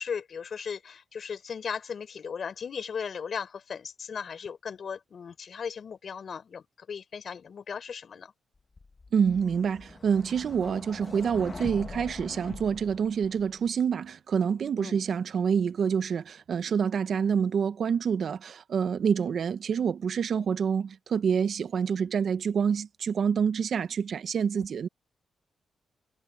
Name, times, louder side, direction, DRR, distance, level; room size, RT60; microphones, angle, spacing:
voice 1, 0.0-8.3 10.6-10.7 14.8-15.0 20.3-20.4 24.5-24.6, left 6 dB, 60° left, 4.7 m, -37 dB
sound 1, 8.8-13.7, left 3 dB, 35° left, 1.6 m, -43 dB
voice 2, 9.1-24.9, right 7 dB, 65° right, 1.3 m, -27 dB
cardioid pair, 75°, 0 cm